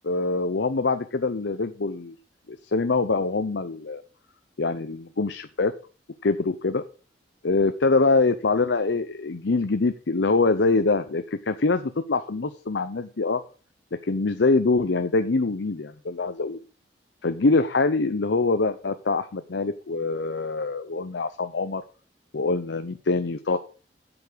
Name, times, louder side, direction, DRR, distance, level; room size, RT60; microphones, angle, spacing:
voice 1, 0.0-2.2 2.5-4.0 4.6-5.7 6.2-6.8 7.4-13.4 13.9-16.6 17.2-21.8 22.3-23.6, left 3 dB, 80° left, 9 dB, 0.7 m, -24 dB
8.5 x 7.1 x 6.2 m, 0.38 s
head